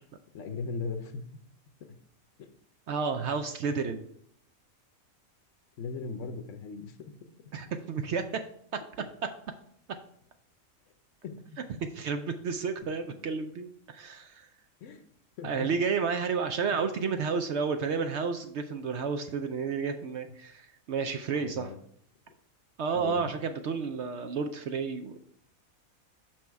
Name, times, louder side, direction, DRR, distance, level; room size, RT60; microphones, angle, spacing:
voice 1, 0.3-1.2 2.4-2.5 5.8-7.0 11.2-11.4 14.8-15.0 15.4-15.7 16.7-16.9 21.4-21.8 22.9-23.3, left 4 dB, 65° left, 8 dB, 1.0 m, -38 dB
voice 2, 2.9-4.1 7.5-8.2 11.9-14.5 15.4-21.7 22.8-25.2, right 5 dB, 65° right, 7 dB, 0.7 m, -31 dB
6.1 x 5.8 x 4.6 m, 0.67 s
omnidirectional pair, 1.5 m